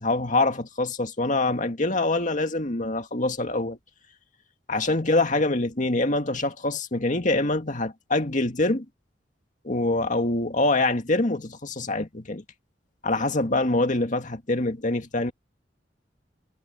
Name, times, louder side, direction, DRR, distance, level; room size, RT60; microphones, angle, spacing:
voice 1, 0.0-3.8 4.7-8.9 9.6-12.4 13.0-15.3, left 2 dB, 45° left, 2.1 m, -25 dB
head